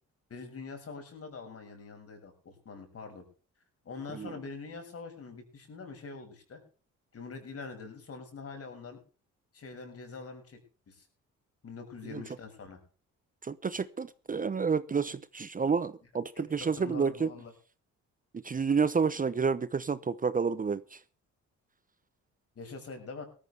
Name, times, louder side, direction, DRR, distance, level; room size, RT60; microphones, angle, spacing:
voice 1, 0.3-3.2 3.8-6.6 7.1-9.0 9.5-10.6 10.9-11.1 11.6-12.8 16.3-17.5 22.5-23.3, left 4 dB, 50° left, 6.4 m, -44 dB
voice 2, 13.4-17.3 18.4-21.0, right 5 dB, 30° right, 0.8 m, -30 dB
18.0 x 14.0 x 3.4 m
cardioid pair, 90°, 30 cm